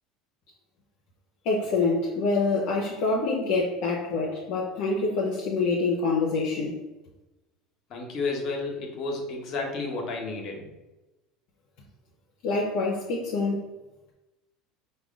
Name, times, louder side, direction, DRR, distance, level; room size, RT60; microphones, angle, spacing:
voice 1, 1.4-6.8 12.4-13.7, left 3 dB, 70° left, -3 dB, 0.7 m, -26 dB
voice 2, 7.9-10.7, left 3 dB, 50° left, 2 dB, 1.1 m, -31 dB
4.7 x 2.2 x 3.7 m, 1.0 s
hypercardioid pair, 90°, 0 cm